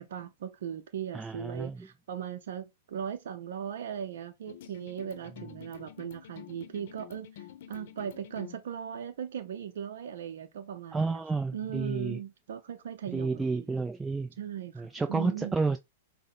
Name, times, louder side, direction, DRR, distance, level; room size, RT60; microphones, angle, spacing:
voice 1, 0.0-11.2 11.5-13.7 14.4-15.6, right 9 dB, 70° right, 0.5 m, -38 dB
voice 2, 1.1-1.8 10.9-12.2 13.1-14.3 14.8-15.8, right 3 dB, 10° right, 0.4 m, -30 dB
sound 1, 4.5-8.6, left 11 dB, 65° left, 0.7 m, -48 dB
5.5 x 2.1 x 3.6 m
hypercardioid pair, 120°, 0 cm